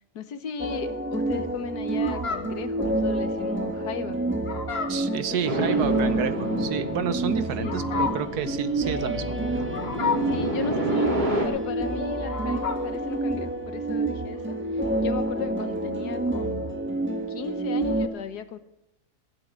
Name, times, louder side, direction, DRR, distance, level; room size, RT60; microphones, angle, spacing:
voice 1, 0.1-4.2 5.3-5.8 7.6-7.8 10.3-18.6, left 7 dB, 75° left, 11 dB, 1.6 m, -36 dB
sound 1, 0.6-18.1, right 2 dB, 10° right, 1.1 m, -28 dB
Fowl, 1.9-13.0, left 5 dB, 40° left, 1.4 m, -34 dB
voice 2, 4.9-9.4, right 8 dB, 70° right, 12 dB, 1.5 m, -30 dB
sound 2, 5.4-11.5, right 1 dB, 25° right, 3.1 m, -30 dB
16.5 x 7.5 x 9.3 m, 0.88 s
omnidirectional pair, 1.7 m